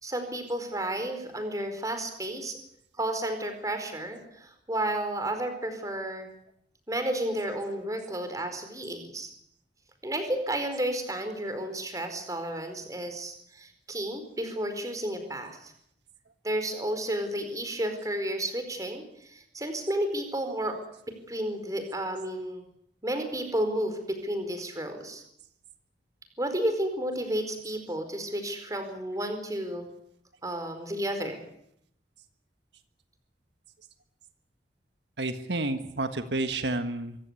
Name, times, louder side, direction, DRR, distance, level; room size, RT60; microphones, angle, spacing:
voice 1, 0.0-2.6 3.0-6.3 6.9-9.3 10.0-15.7 16.4-20.8 21.3-22.6 23.0-25.2 26.4-29.9 30.4-31.5, right 1 dB, 20° right, 7 dB, 4.6 m, -32 dB
voice 2, 35.2-37.2, right 2 dB, 80° right, 9 dB, 1.5 m, -30 dB
25.0 x 16.0 x 9.8 m, 0.72 s
head